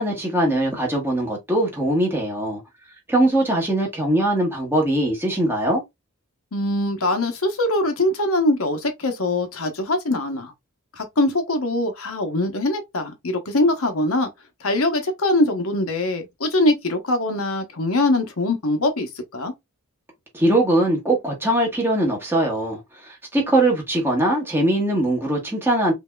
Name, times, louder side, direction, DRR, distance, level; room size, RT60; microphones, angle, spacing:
voice 1, 0.0-2.6 3.1-5.8 20.3-25.9, right 1 dB, 10° right, 1.4 m, -21 dB
voice 2, 6.5-10.5 11.0-14.3 14.6-19.5, left 1 dB, 75° left, 1.0 m, -22 dB
5.3 x 2.8 x 2.3 m
head